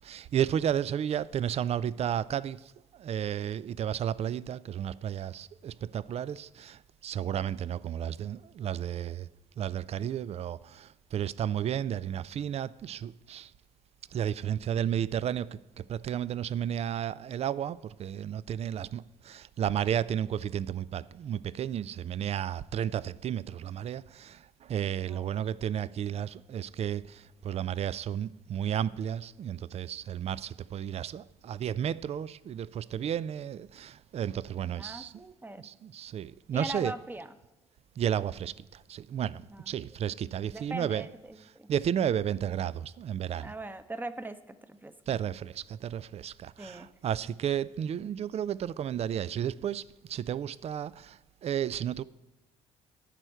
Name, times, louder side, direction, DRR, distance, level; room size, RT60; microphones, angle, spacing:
voice 1, 0.1-2.6 3.0-6.8 7.0-9.3 9.6-10.6 11.1-13.5 14.1-15.5 15.9-24.4 24.7-27.0 27.4-35.1 35.6-36.9 38.0-38.5 38.9-41.1 41.7-43.5 45.1-45.5 45.8-49.8 50.1-50.9 51.4-52.0, right 9 dB, 40° right, 0.4 m, -32 dB
voice 2, 25.1-25.4 34.7-35.7 36.5-37.3 39.5-39.7 40.5-41.7 43.4-44.9 46.6-46.9, right 2 dB, 10° right, 0.8 m, -41 dB
11.0 x 4.3 x 8.0 m
hypercardioid pair, 55°, 16 cm